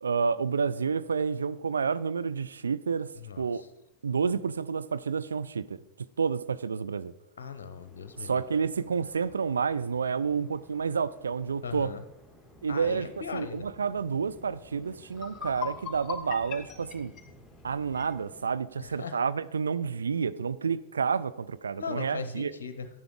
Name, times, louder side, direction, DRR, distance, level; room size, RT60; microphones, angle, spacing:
voice 1, 0.0-3.1 3.4-3.6 4.0-5.8 6.2-7.1 8.2-11.9 12.6-17.1 17.6-22.5, right 5 dB, 70° right, 14 dB, 0.3 m, -29 dB
voice 2, 3.2-3.7 7.4-8.4 11.6-12.0 12.7-13.7 18.8-19.2 21.8-22.9, left 6 dB, 60° left, 10 dB, 0.6 m, -39 dB
Waves surf, 7.8-18.5, equal, ahead, 1.7 m, -55 dB
sound 1, 14.6-14.7 15.1-18.1, left 8 dB, 25° left, 1.6 m, -40 dB
10.5 x 10.5 x 3.7 m, 0.91 s
figure-of-eight pair, 90°, 0 cm